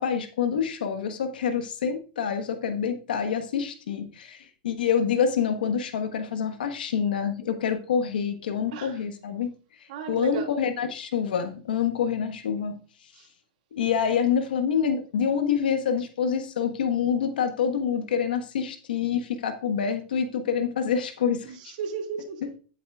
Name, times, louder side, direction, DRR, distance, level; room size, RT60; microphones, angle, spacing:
voice 1, 0.0-9.5 10.1-12.8 13.7-21.7, left 7 dB, 85° left, 1.4 m, -26 dB
voice 2, 9.9-10.5 13.2-13.3 21.4-22.6, right 6 dB, 60° right, 2.2 m, -35 dB
10.0 x 8.3 x 2.4 m
supercardioid pair, 135°, 5 cm